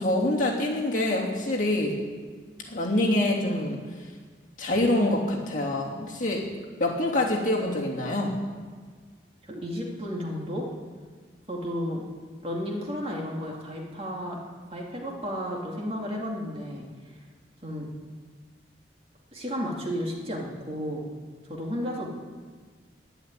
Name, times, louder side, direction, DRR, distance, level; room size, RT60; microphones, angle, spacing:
voice 1, 0.0-1.9 2.7-3.8 4.6-6.4 6.8-8.3, left 1 dB, 45° left, -3 dB, 3.0 m, -25 dB
voice 2, 9.4-10.7 11.5-12.0 12.4-14.4 14.7-16.9 17.6-17.9 19.3-21.0 21.5-22.1, equal, 35° right, -1 dB, 2.6 m, -32 dB
11.5 x 11.0 x 9.1 m, 1.5 s
head